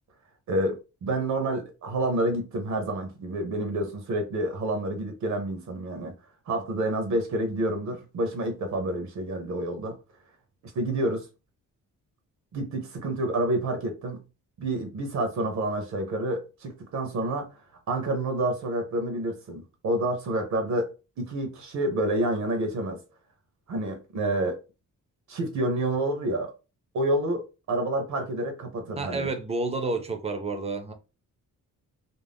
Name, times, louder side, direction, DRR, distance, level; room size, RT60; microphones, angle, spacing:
voice 1, 0.5-6.1 6.5-10.0 10.7-11.3 12.5-14.2 14.6-17.6 17.9-20.9 21.2-23.0 23.7-24.6 25.3-26.5 26.9-29.3, right 1 dB, 60° right, 0.7 m, -28 dB
voice 2, 29.0-30.9, right 3 dB, 20° right, 0.4 m, -30 dB
2.5 x 2.0 x 3.3 m
wide cardioid pair, 165°, 32 cm